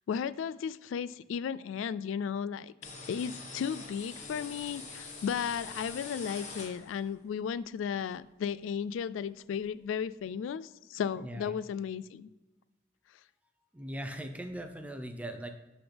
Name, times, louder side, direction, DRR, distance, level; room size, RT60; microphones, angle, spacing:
voice 1, 0.1-2.7 3.1-12.3, left 7 dB, 90° left, 18 dB, 0.3 m, -35 dB
sound 1, 2.8-7.2, left 3 dB, 40° left, 1.4 m, -44 dB
voice 2, 11.2-11.6 13.7-15.5, right 1 dB, 10° right, 6 dB, 0.6 m, -39 dB
11.5 x 4.0 x 3.4 m, 1.1 s
head